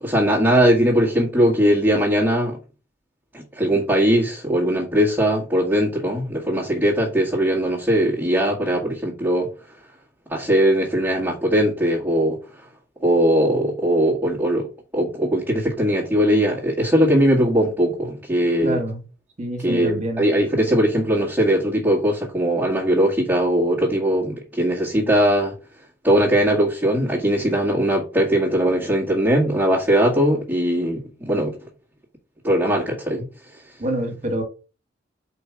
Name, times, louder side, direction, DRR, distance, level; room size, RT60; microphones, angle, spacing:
voice 1, 0.0-2.6 3.3-9.5 10.3-12.4 13.0-14.7 14.9-18.8 19.6-25.5 26.0-31.5 32.4-33.3, equal, 10° right, 1.7 m, -20 dB
voice 2, 18.6-19.0 19.4-20.2 33.8-34.4, right 1 dB, 35° right, 1.8 m, -26 dB
5.3 x 4.6 x 6.0 m
head